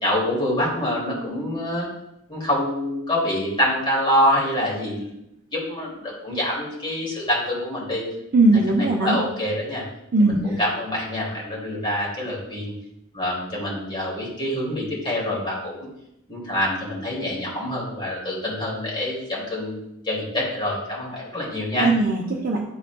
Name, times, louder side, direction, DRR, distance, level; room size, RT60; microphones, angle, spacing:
voice 1, 0.0-1.9 2.3-5.1 5.5-8.0 9.0-9.8 10.2-12.7 13.1-15.8 16.3-21.9, left 1 dB, 25° left, -5 dB, 2.3 m, -26 dB
voice 2, 8.3-9.2 10.1-10.4 21.8-22.6, right 2 dB, 45° right, -3 dB, 0.7 m, -19 dB
11.0 x 3.9 x 2.2 m, 0.84 s
head